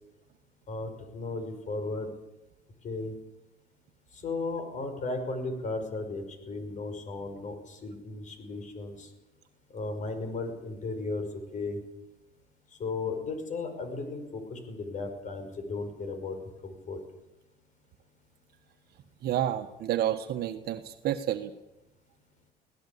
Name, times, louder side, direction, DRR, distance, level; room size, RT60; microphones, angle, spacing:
voice 1, 0.7-2.1 2.8-3.1 4.1-9.1 9.7-11.3 11.5-11.8 12.8-17.0, left 3 dB, 45° left, 8 dB, 5.6 m, -35 dB
voice 2, 19.2-21.5, right 11 dB, 70° right, 7 dB, 1.4 m, -30 dB
23.0 x 17.5 x 8.5 m, 0.95 s
cardioid pair, 110°, 17 cm